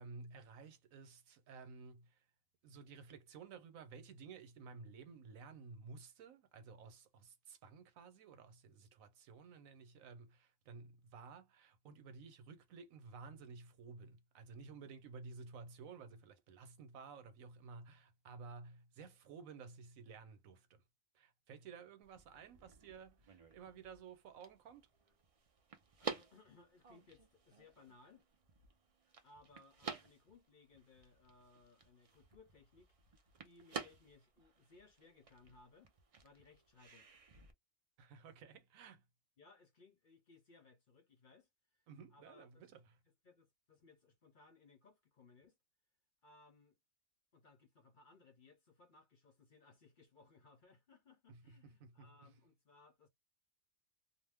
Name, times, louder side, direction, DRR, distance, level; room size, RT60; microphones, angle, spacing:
voice 1, 0.0-2.2 2.6-20.8 21.1-24.9 38.0-39.0 41.9-43.0 51.3-52.3, right 4 dB, 85° right, 1.1 m, -54 dB
sound 1, 22.0-37.5, right 5 dB, 50° right, 0.4 m, -52 dB
voice 2, 26.0-28.3 29.2-32.9 33.4-35.9 36.2-37.1 39.4-41.9 42.1-42.5 43.2-45.6 46.2-46.8 47.3-53.1, left 3 dB, 50° left, 0.7 m, -64 dB
2.6 x 2.1 x 3.4 m
omnidirectional pair, 1.4 m